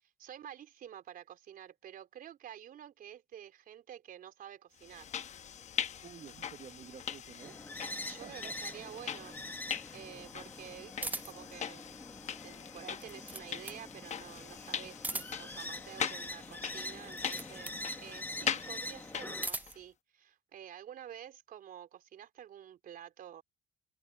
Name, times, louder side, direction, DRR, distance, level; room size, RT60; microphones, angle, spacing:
voice 1, 0.0-5.1 8.0-9.7 9.9-11.9 12.4-23.4, right 10 dB, 60° right, 4.0 m, -50 dB
sound 1, 4.8-19.8, left 8 dB, 45° left, 1.0 m, -41 dB
voice 2, 6.0-7.6 8.0-8.8, right 8 dB, 40° right, 1.3 m, -52 dB
sound 2, 7.4-19.5, left 2 dB, 10° left, 1.5 m, -45 dB
sound 3, 11.0-11.5 12.8-13.9 14.9-15.6 17.0-17.8 19.1-19.9, right 2 dB, 10° right, 0.4 m, -40 dB
open air
cardioid pair, 110°, 17 cm